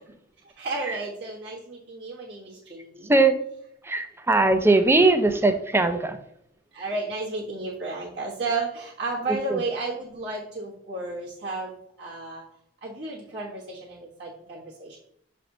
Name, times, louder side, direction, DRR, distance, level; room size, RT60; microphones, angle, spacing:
voice 1, 0.6-3.2 6.7-12.4 12.8-15.0, right 3 dB, 65° right, -9 dB, 1.4 m, -33 dB
voice 2, 3.9-6.2 9.5-9.6, right 2 dB, 15° right, 8 dB, 0.5 m, -20 dB
7.1 x 3.5 x 3.8 m, 0.73 s
head